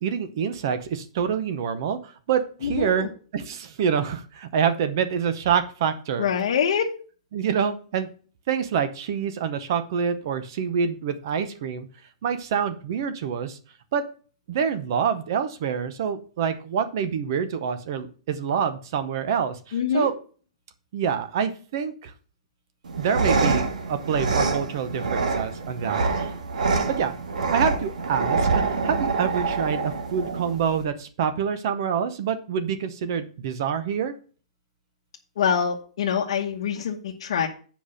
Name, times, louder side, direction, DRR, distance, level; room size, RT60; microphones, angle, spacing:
voice 1, 0.0-6.2 7.3-8.1 8.5-11.9 12.2-13.6 13.9-14.0 14.5-20.1 20.9-22.1 23.0-26.3 27.0-27.1 27.5-34.1, right 7 dB, 30° right, 11 dB, 0.7 m, -26 dB
voice 2, 2.6-3.1 6.2-6.9 19.7-20.1 35.4-37.5, left 7 dB, 45° left, -1 dB, 1.0 m, -25 dB
sound 1, 22.8-30.8, right 4 dB, 80° right, 2.0 m, -26 dB
7.7 x 5.1 x 6.4 m, 0.39 s
hypercardioid pair, 180°, 4 cm